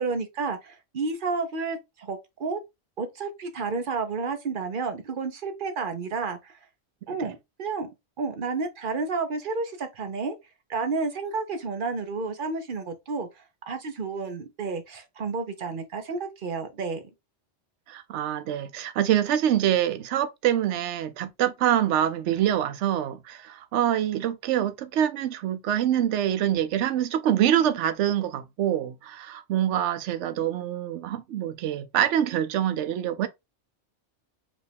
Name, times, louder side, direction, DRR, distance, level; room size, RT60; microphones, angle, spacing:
voice 1, 0.0-2.6 3.0-6.6 7.1-7.9 8.2-10.4 10.7-13.3 13.7-17.0, right 4 dB, 50° right, 0.9 m, -31 dB
voice 2, 17.9-33.3, right 11 dB, 75° right, 0.9 m, -25 dB
5.0 x 2.4 x 3.3 m
omnidirectional pair, 1.2 m